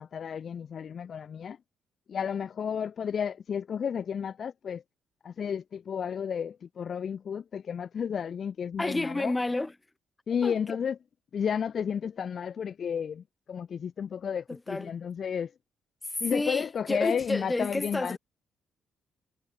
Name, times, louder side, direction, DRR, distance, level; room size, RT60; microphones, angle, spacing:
voice 1, 0.0-1.6 2.1-4.8 5.2-9.3 10.3-11.0 11.3-15.5 16.2-18.2, left 7 dB, 50° left, 1.1 m, -32 dB
voice 2, 8.8-9.7 10.4-10.5 14.5-14.9 16.1-18.2, left 2 dB, 15° left, 4.4 m, -30 dB
cardioid pair, 90°, 0 cm